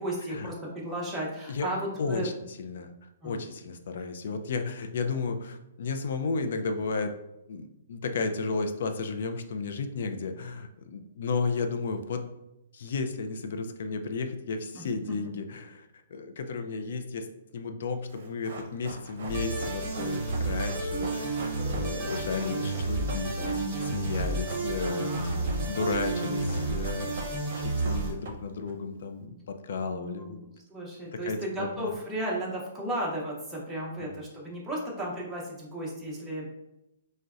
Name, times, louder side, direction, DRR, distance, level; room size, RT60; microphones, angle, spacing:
voice 1, 0.0-2.3 3.2-3.4 14.7-14.9 24.8-25.4 29.9-30.4 30.7-36.5, right 1 dB, 5° right, -5 dB, 0.7 m, -34 dB
voice 2, 2.0-2.9 3.2-7.1 7.5-12.2 12.7-17.3 17.5-27.2 27.6-30.4 31.1-31.9 34.0-34.2, left 4 dB, 60° left, 7 dB, 0.3 m, -33 dB
Run, 18.1-28.7 29.0-29.1, right 2 dB, 55° right, 0.7 m, -43 dB
sound 1, 19.3-28.1, right 2 dB, 25° right, 1.0 m, -31 dB
3.9 x 2.1 x 2.3 m, 0.88 s
hypercardioid pair, 165°, 0 cm